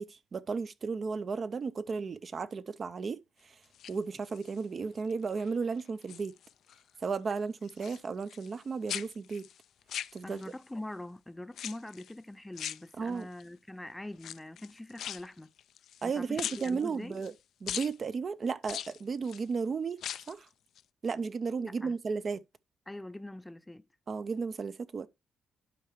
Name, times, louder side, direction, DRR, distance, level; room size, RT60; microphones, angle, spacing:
voice 1, 0.0-3.6 3.9-6.3 7.0-9.5 10.1-10.4 13.0-13.3 16.0-17.3 17.6-20.0 20.3-20.5 21.0-22.4 24.1-25.1, right 5 dB, 45° right, 0.5 m, -34 dB
sound 1, 3.6-4.6 5.1-5.5 5.8-6.8 7.1-8.6 8.9-10.7 11.5-12.1 12.6-13.4 14.1-16.1 16.4-17.3 17.7-17.9 18.6-19.5 19.9-20.4 20.8-20.9, left 10 dB, 75° left, 0.3 m, -41 dB
voice 2, 10.2-15.5 16.0-17.2 21.6-22.0 22.9-23.9, left 1 dB, 10° left, 0.5 m, -43 dB
11.5 x 4.7 x 3.0 m
cardioid pair, 90°, 0 cm